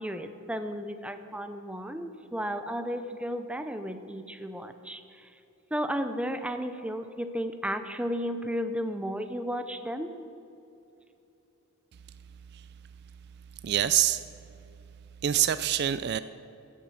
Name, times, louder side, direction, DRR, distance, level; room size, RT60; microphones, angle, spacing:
voice 1, 0.0-5.0 5.7-10.1, equal, 5° right, 8 dB, 0.6 m, -33 dB
voice 2, 13.6-14.2 15.2-16.2, right 11 dB, 50° right, 14 dB, 0.3 m, -25 dB
15.5 x 7.4 x 7.1 m, 2.8 s
head